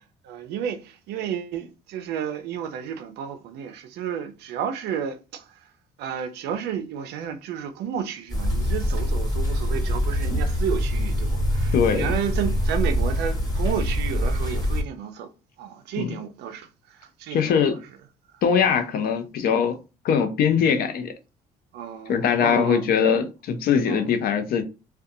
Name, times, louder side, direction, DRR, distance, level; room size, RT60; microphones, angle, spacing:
voice 1, 0.2-5.5 6.0-15.3 15.6-17.8 18.7-18.9 20.7-20.8 21.7-22.9 23.9-24.1, right 8 dB, 75° right, 0.5 m, -32 dB
sound 1, 8.3-14.8, equal, 20° left, 1.3 m, -24 dB
voice 2, 11.7-12.2 16.0-16.1 17.3-17.8 18.4-19.8 20.0-21.1 22.1-24.6, left 7 dB, 65° left, 0.5 m, -21 dB
2.4 x 2.2 x 2.6 m
cardioid pair, 110°, 17 cm